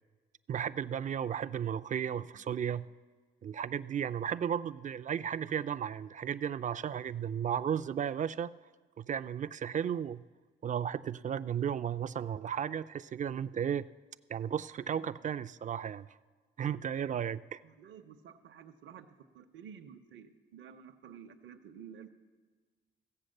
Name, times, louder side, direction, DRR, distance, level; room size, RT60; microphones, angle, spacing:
voice 1, 0.5-2.9 3.4-8.5 9.0-10.2 10.6-13.9 14.3-16.1 16.6-17.6, right 8 dB, 40° right, 14 dB, 0.4 m, -34 dB
voice 2, 17.6-22.1, right 8 dB, 75° right, 6 dB, 0.8 m, -51 dB
15.5 x 7.8 x 6.5 m, 1.4 s
cardioid pair, 90°, 20 cm